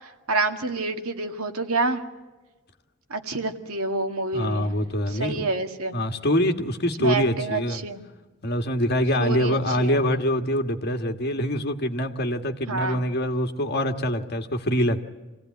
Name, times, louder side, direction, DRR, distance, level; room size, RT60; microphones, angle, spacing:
voice 1, 0.0-2.0 3.1-4.7 5.1-5.9 7.0-8.0 9.2-10.0 12.7-13.0, right 3 dB, 80° right, 5 dB, 2.1 m, -28 dB
voice 2, 4.3-5.5 5.9-7.8 8.4-15.0, equal, 45° left, 6 dB, 1.7 m, -24 dB
27.0 x 17.0 x 9.5 m, 1.2 s
head